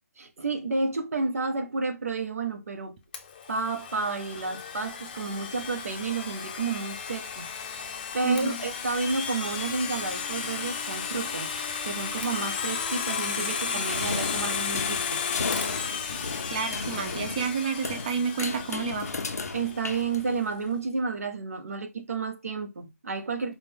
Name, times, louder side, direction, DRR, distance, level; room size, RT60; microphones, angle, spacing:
voice 1, 0.2-3.0 3.5-11.5 11.8-15.2 19.5-23.5, right 4 dB, 70° right, 1.1 m, -31 dB
Domestic sounds home sounds, 3.1-19.9, left 6 dB, 35° left, 0.6 m, -34 dB
voice 2, 8.2-8.6 13.4-14.1 16.5-19.1, right 5 dB, 30° right, 0.5 m, -31 dB
sound 1, 13.9-20.6, left 3 dB, 90° left, 0.8 m, -35 dB
4.9 x 2.4 x 3.4 m
hypercardioid pair, 160°, 8 cm